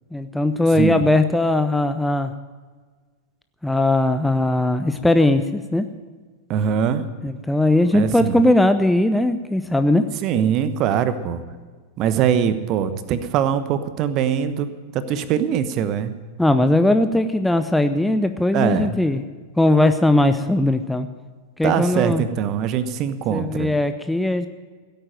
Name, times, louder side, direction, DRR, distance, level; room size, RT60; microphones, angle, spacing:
voice 1, 0.1-2.3 3.6-5.9 7.2-10.0 16.4-19.2 19.6-21.1 21.6-22.2 23.3-24.5, left 1 dB, 5° left, 9 dB, 0.6 m, -19 dB
voice 2, 6.5-7.0 7.9-8.4 10.2-11.4 12.0-14.7 14.9-16.1 18.5-19.0 21.6-23.7, right 8 dB, 40° right, 12 dB, 1.1 m, -22 dB
16.5 x 8.9 x 8.9 m, 1.5 s
figure-of-eight pair, 90°, 0 cm